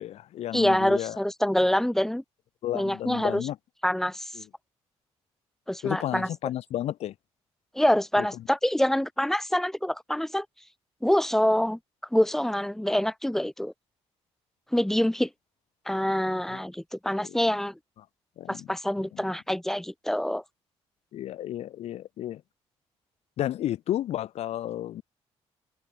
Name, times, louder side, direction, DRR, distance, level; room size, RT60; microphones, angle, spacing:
voice 1, 0.0-1.2 2.6-3.6 4.4-4.5 5.8-7.1 8.2-8.3 17.2-17.4 18.4-18.7 21.1-22.4 23.4-25.0, left 12 dB, 75° left, 7.6 m, -32 dB
voice 2, 0.5-2.2 2.7-3.4 3.8-4.3 5.7-6.3 7.7-10.5 11.0-11.8 12.1-13.7 14.7-15.3 15.9-17.7 18.5-20.4, left 1 dB, 5° left, 6.0 m, -25 dB
cardioid pair, 135°, 11 cm